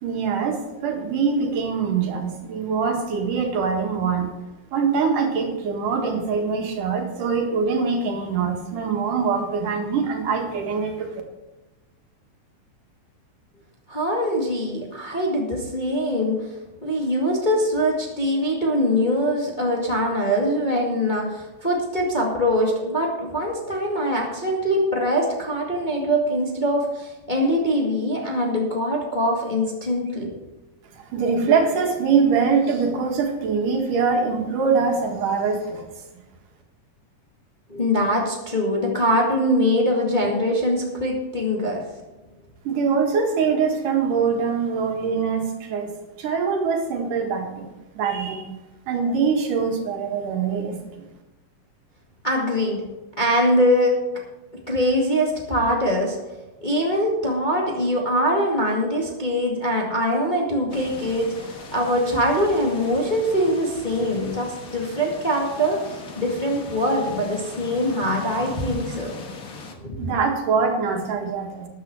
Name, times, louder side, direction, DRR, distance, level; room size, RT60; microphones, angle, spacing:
voice 1, 0.0-4.3 4.7-11.2 30.9-35.8 42.6-45.9 46.2-48.5 48.9-51.1 70.0-71.7, right 5 dB, 80° right, 3 dB, 3.3 m, -23 dB
voice 2, 13.9-16.5 16.8-30.4 37.7-41.8 52.2-52.8 53.1-54.0 54.7-56.2 56.6-69.1 69.8-70.1, equal, 20° left, -2 dB, 1.7 m, -23 dB
sound 1, 60.7-69.7, left 3 dB, 45° left, 1.1 m, -39 dB
13.0 x 10.0 x 4.7 m, 1.1 s
omnidirectional pair, 3.6 m